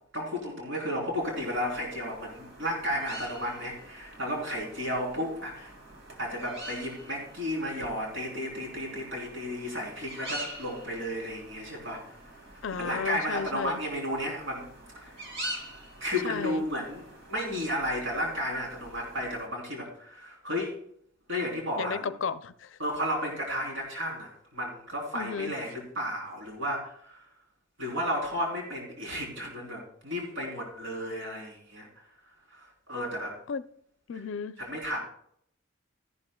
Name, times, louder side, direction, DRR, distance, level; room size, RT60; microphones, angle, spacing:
voice 1, 0.1-5.7 6.2-12.2 12.8-14.7 15.0-15.1 16.0-17.0 17.3-20.8 21.3-22.1 22.8-27.2 27.8-31.9 32.5-33.3 34.6-35.0, equal, 75° right, 3.5 m, -33 dB
sound 1, 1.2-19.5, right 1 dB, 60° right, 2.2 m, -45 dB
voice 2, 12.6-13.8 16.1-16.6 21.8-22.8 25.1-25.6 33.5-33.6 34.1-34.6, left 6 dB, 65° left, 0.4 m, -34 dB
13.5 x 11.5 x 2.3 m
head